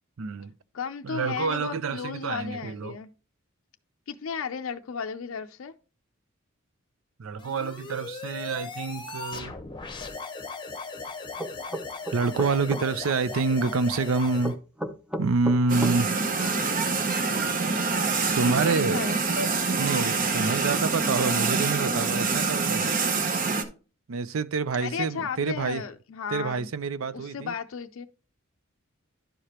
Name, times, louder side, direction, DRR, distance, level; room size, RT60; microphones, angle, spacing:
voice 1, 0.2-0.5 1.0-3.0 7.2-9.5 12.1-14.6 15.2-16.1 18.3-19.0 19.7-22.9 24.1-25.8 26.3-27.5, right 4 dB, 75° right, 0.5 m, -27 dB
voice 2, 0.7-3.1 4.1-5.7 16.3-16.8 18.4-19.4 24.8-26.7 27.1-28.1, left 6 dB, 70° left, 0.4 m, -35 dB
sound 1, 7.4-14.5, left 4 dB, 20° left, 0.9 m, -38 dB
sound 2, 11.4-12.8 14.4-16.0, equal, 5° right, 0.6 m, -32 dB
sound 3, 15.7-23.6, right 4 dB, 40° right, 0.8 m, -26 dB
11.5 x 4.9 x 2.9 m
head